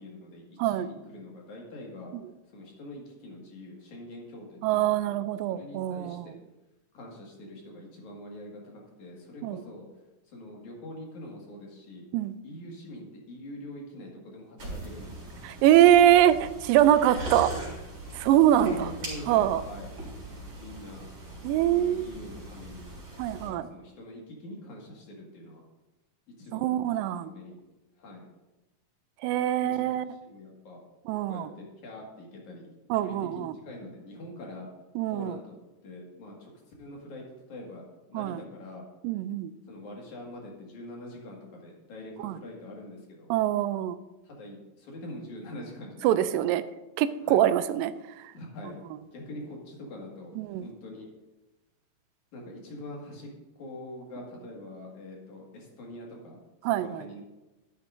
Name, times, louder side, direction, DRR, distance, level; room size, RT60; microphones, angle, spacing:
voice 1, 0.0-2.1 2.5-4.9 5.5-6.4 6.9-9.9 10.3-12.0 12.4-15.4 18.6-19.9 20.6-21.1 21.7-22.9 23.3-25.6 26.4-26.8 27.2-27.6 28.0-28.3 29.6-29.9 30.2-30.8 31.3-34.7 35.1-35.6 35.8-36.5 36.8-38.8 39.7-43.3 44.2-46.5 47.2-47.5 48.3-48.8 49.1-51.1 52.3-53.3 53.6-57.2, left 1 dB, 60° left, -1 dB, 3.2 m, -44 dB
voice 2, 4.6-6.3 9.4-9.6 12.1-12.4 15.4-17.5 18.1-18.9 19.3-19.6 21.4-22.1 23.2-23.7 26.5-27.3 29.2-30.1 31.1-31.5 32.9-33.6 35.0-35.4 38.1-38.4 39.0-39.5 42.2-42.4 43.3-44.0 46.0-46.6 47.0-47.9 50.4-50.7 56.6-57.1, right 12 dB, 90° right, 13 dB, 2.3 m, -23 dB
sound 1, 14.6-23.5, right 1 dB, 35° right, 4.7 m, -40 dB
12.5 x 11.0 x 2.6 m, 1.0 s
omnidirectional pair, 3.9 m